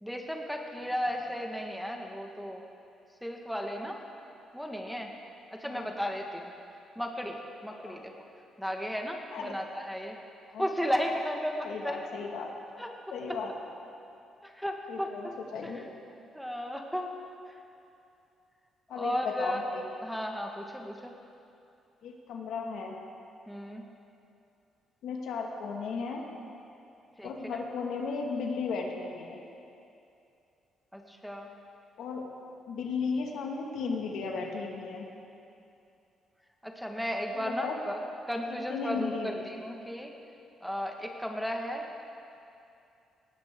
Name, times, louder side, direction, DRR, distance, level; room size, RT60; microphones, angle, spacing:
voice 1, 0.0-2.6 3.2-4.0 4.5-5.1 5.6-6.5 7.0-7.4 7.6-8.1 8.6-10.2 10.6-12.0 12.8-12.9 14.4-15.4 15.6-15.8 16.3-17.1 19.0-19.6 20.0-21.1 23.5-23.8 27.2-27.6 30.9-31.5 36.6-38.0 38.3-40.1 40.6-41.8, equal, ahead, 1 dB, 1.6 m, -34 dB
voice 2, 5.6-6.0 7.8-8.0 9.3-9.6 10.5-10.7 11.6-12.5 13.1-13.5 14.9-15.9 18.9-19.9 22.0-23.0 25.0-26.2 27.2-29.4 32.0-32.3 32.7-35.1 37.3-37.8 38.7-39.4, left 4 dB, 80° left, 1 dB, 1.9 m, -35 dB
18.5 x 16.0 x 3.8 m, 2.7 s
cardioid pair, 90°, 0 cm